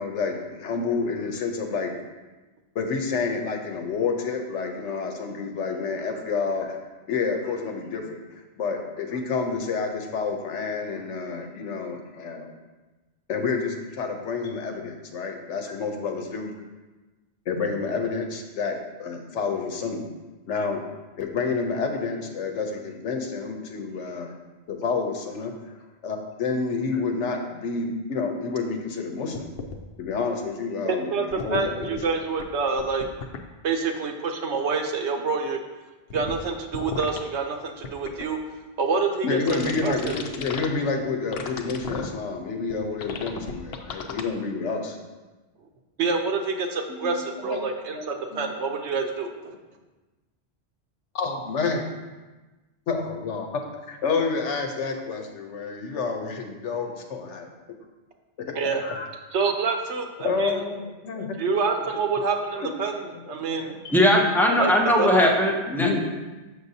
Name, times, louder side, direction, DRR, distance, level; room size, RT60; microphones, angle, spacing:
voice 1, 0.0-1.9 2.7-6.8 7.1-8.2 8.6-12.5 13.3-16.5 17.5-20.0 20.5-20.8 21.2-24.3 24.7-25.5 26.0-29.4 30.0-31.1 31.4-32.0 39.2-45.0 47.0-47.6 47.9-48.0 48.3-48.4 51.1-51.9 52.9-53.6 53.9-57.5 58.8-59.1 60.2-61.3 62.6-62.7 63.5-63.7 65.8-66.0, left 4 dB, 90° left, 4 dB, 1.1 m, -29 dB
sound 1, 29.3-29.8 31.3-32.0 32.4-32.5 32.8-33.4 36.1-36.4 36.7-37.2 37.8-38.3 39.5-40.7 41.3-42.1 42.7-42.8 43.0-44.2, left 5 dB, 70° left, 0.8 m, -34 dB
voice 2, 30.8-33.0 33.6-35.6 36.1-38.4 38.8-40.2 46.0-49.5 58.5-58.8 59.3-60.6 61.1-63.8 64.6-64.7 65.0-65.4, right 4 dB, 75° right, 4 dB, 1.0 m, -27 dB
voice 3, 63.9-65.9, left 1 dB, 5° left, 0 dB, 0.4 m, -19 dB
6.5 x 6.4 x 2.7 m, 1.2 s
omnidirectional pair, 1.2 m